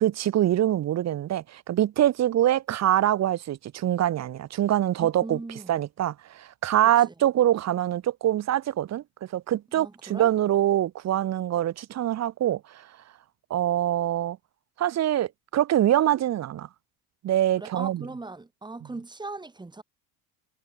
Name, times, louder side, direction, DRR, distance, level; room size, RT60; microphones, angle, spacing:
voice 1, 0.0-5.4 5.7-9.0 9.3-12.9 13.5-14.4 14.8-16.7 17.2-18.1, right 12 dB, 45° right, 3.1 m, -24 dB
voice 2, 5.0-5.8 7.1-7.2 9.7-10.3 17.6-19.8, right 3 dB, 10° right, 6.3 m, -39 dB
supercardioid pair, 115°, 37 cm